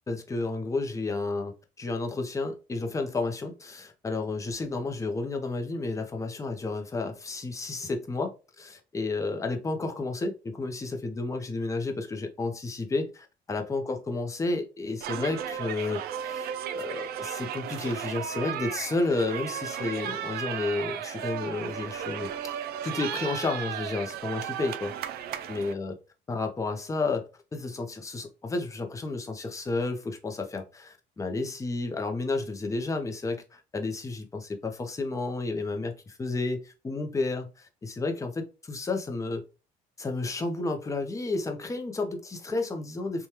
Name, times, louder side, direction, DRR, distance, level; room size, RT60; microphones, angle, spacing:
voice 1, 0.1-22.3 22.8-24.9 25.5-25.9 26.3-27.3 27.5-39.4 40.0-43.3, left 3 dB, 20° left, 0.6 m, -31 dB
sound 1, 15.0-25.7, right 9 dB, 70° right, 0.4 m, -35 dB
3.1 x 2.3 x 2.7 m
cardioid pair, 110°, 17 cm